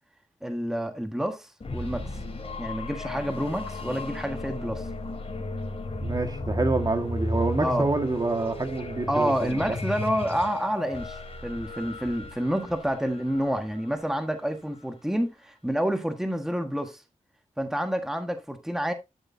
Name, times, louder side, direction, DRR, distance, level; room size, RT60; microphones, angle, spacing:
voice 1, 0.4-2.0 2.6-4.9 7.6-7.9 9.1-17.0 17.6-18.9, equal, 5° right, 1.5 m, -28 dB
sound 1, 1.6-14.3, left 1 dB, 50° left, 3.4 m, -34 dB
voice 2, 6.0-9.6, right 2 dB, 30° right, 1.7 m, -27 dB
12.0 x 6.6 x 2.7 m
wide cardioid pair, 80°, 13 cm